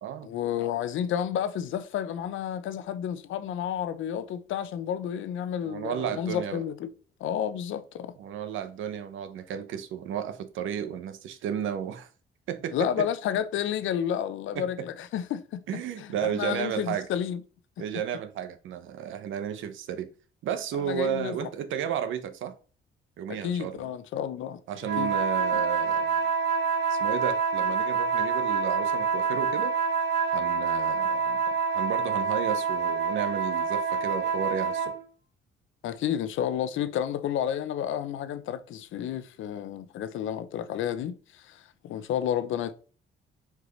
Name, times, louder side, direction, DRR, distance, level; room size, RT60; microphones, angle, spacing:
voice 1, 0.2-6.9 7.2-8.1 12.7-15.6 16.0-17.4 20.8-21.5 23.3-24.6 25.0-25.1 35.8-42.7, left 9 dB, 80° left, 0.8 m, -31 dB
voice 2, 5.6-6.6 8.2-12.1 12.5-13.1 14.5-14.7 15.7-17.1 17.8-20.1 20.4-22.5 23.2-23.8 24.7-26.2 26.9-29.8 30.3-31.4 31.7-34.9, right 9 dB, 80° right, 1.0 m, -33 dB
sound 1, 24.8-35.0, right 5 dB, 65° right, 1.8 m, -27 dB
4.9 x 4.8 x 4.0 m
cardioid pair, 90°, 20 cm